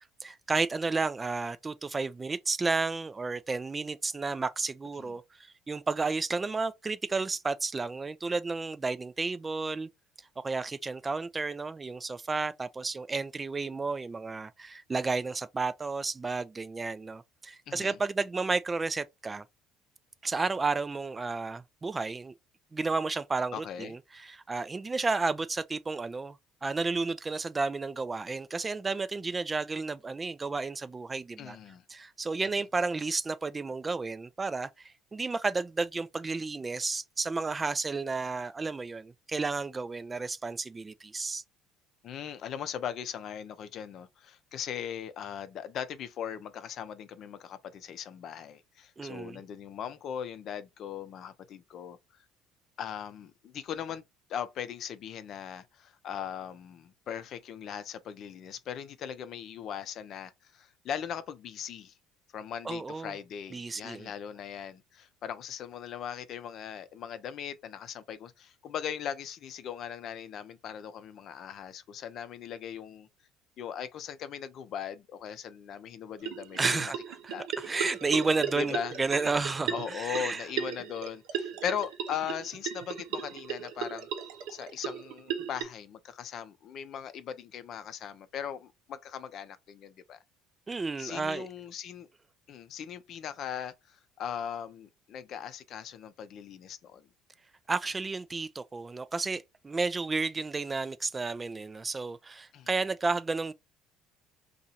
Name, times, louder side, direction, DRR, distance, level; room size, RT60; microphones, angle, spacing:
voice 1, 0.2-9.9 10.4-19.4 20.2-22.3 22.7-26.4 26.6-31.6 31.9-41.4 49.0-49.4 62.6-63.1 63.5-64.1 76.6-80.5 90.7-91.5 97.7-103.5, right 3 dB, 25° right, 0.4 m, -32 dB
voice 2, 17.7-18.0 23.5-23.9 31.4-31.8 42.0-52.0 52.8-54.0 54.3-61.9 62.3-73.1 73.6-76.9 77.3-77.5 78.6-78.9 79.7-84.1 84.5-90.2 91.0-92.1 92.5-97.1 102.5-102.7, left 8 dB, 55° left, 0.6 m, -39 dB
sound 1, 76.2-85.6, right 8 dB, 70° right, 0.7 m, -36 dB
2.8 x 2.5 x 4.1 m
hypercardioid pair, 65°, 0 cm